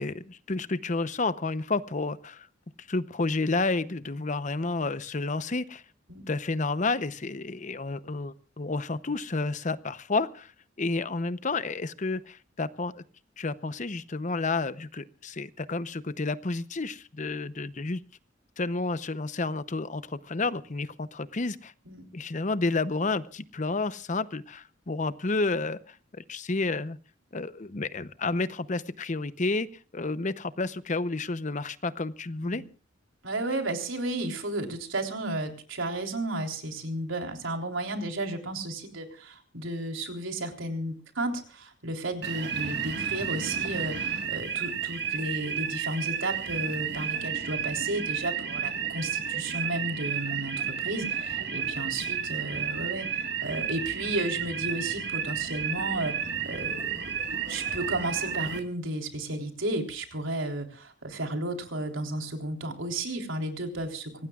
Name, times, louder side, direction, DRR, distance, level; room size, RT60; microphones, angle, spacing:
voice 1, 0.0-2.5 2.9-5.8 6.3-10.5 10.8-13.0 13.4-18.0 18.6-21.7 22.1-27.0 27.3-29.7 29.9-32.6, left 3 dB, 40° left, 14 dB, 0.7 m, -30 dB
voice 2, 33.2-50.6 50.8-56.1 56.4-57.0 57.5-64.3, right 1 dB, 80° right, 3 dB, 3.6 m, -33 dB
sound 1, 42.2-58.6, right 7 dB, 55° right, 1.7 m, -32 dB
25.0 x 18.5 x 2.4 m, 0.38 s
head